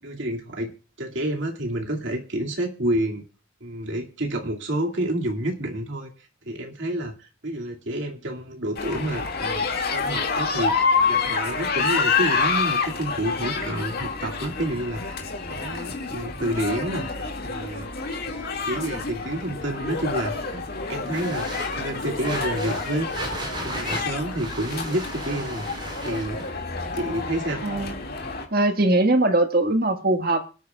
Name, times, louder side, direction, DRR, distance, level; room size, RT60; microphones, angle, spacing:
voice 1, 0.0-0.7 1.0-3.2 3.6-6.1 6.4-15.2 15.5-17.1 17.4-17.9 18.7-20.6 20.9-21.5 21.8-23.1 23.6-25.7 26.0-26.4 26.9-27.6, right 1 dB, 60° right, 1 dB, 2.3 m, -29 dB
sound 1, 8.8-28.4, left 4 dB, 45° left, 2.1 m, -28 dB
sound 2, 21.1-26.5, right 1 dB, 20° right, 3.6 m, -36 dB
voice 2, 27.6-27.9 28.5-30.5, right 2 dB, 45° right, 6 dB, 1.7 m, -21 dB
25.0 x 9.3 x 2.4 m, 0.35 s
head